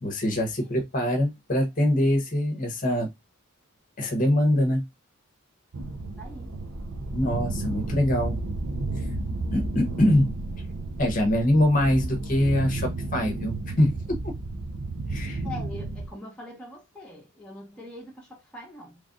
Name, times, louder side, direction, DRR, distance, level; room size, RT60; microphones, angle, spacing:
voice 1, 0.0-3.1 4.0-4.8 7.1-8.4 8.9-9.0 9.5-10.4 11.0-14.3 15.1-15.4, left 1 dB, 40° left, 0.8 m, -24 dB
sound 1, 5.7-16.1, right 2 dB, 75° right, 0.7 m, -32 dB
voice 2, 6.2-6.5 15.4-19.0, left 1 dB, 5° left, 0.9 m, -43 dB
3.2 x 2.4 x 3.7 m
head